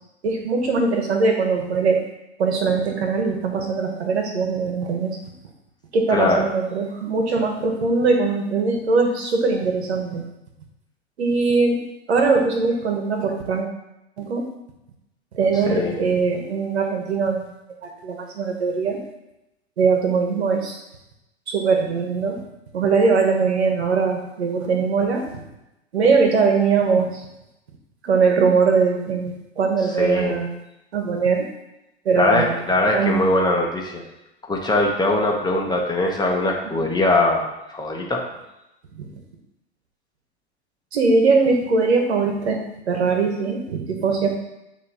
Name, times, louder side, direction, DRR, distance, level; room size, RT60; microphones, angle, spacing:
voice 1, 0.2-2.0 2.4-5.2 5.9-10.2 11.2-11.8 12.1-13.7 14.2-14.4 15.3-17.4 18.0-19.0 19.8-20.8 21.5-22.4 22.7-25.4 25.9-27.2 28.0-30.5 30.9-31.5 32.0-32.5 32.9-33.2 36.7-36.8 38.9-39.1 40.9-42.6 42.9-44.4, right 4 dB, 75° right, 3 dB, 1.3 m, -21 dB
voice 2, 6.1-6.4 15.6-16.0 30.0-30.3 32.1-34.0 34.5-38.2, left 2 dB, 10° left, 0 dB, 1.2 m, -21 dB
9.0 x 3.1 x 4.3 m, 0.90 s
hypercardioid pair, 90°, 33 cm